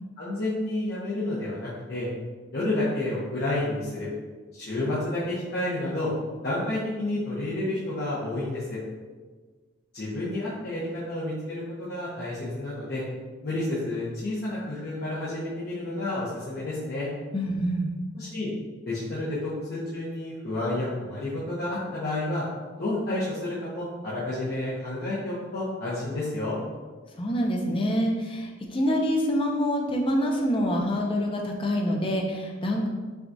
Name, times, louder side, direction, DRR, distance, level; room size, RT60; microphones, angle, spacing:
voice 1, 0.2-2.1 2.5-4.1 4.5-6.1 6.4-8.8 9.9-13.0 13.4-17.1 18.1-18.5 18.8-22.4 22.8-26.6, left 2 dB, 55° left, -9 dB, 0.8 m, -30 dB
voice 2, 17.3-17.9 27.2-32.9, equal, 25° left, 1 dB, 0.5 m, -26 dB
5.9 x 2.3 x 2.6 m, 1.4 s
head